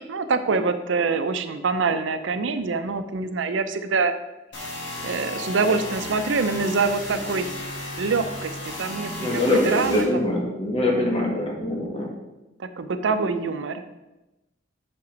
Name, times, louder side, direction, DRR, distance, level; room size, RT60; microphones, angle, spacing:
voice 1, 0.0-4.1 5.0-7.5 8.0-10.3 10.8-11.4 12.6-13.8, right 4 dB, 80° right, 10 dB, 0.5 m, -25 dB
sound 1, 4.5-10.0, left 1 dB, 75° left, 2.0 m, -34 dB
voice 2, 9.2-12.1, left 1 dB, 30° left, -1 dB, 1.5 m, -23 dB
5.6 x 5.2 x 5.1 m, 1.0 s
head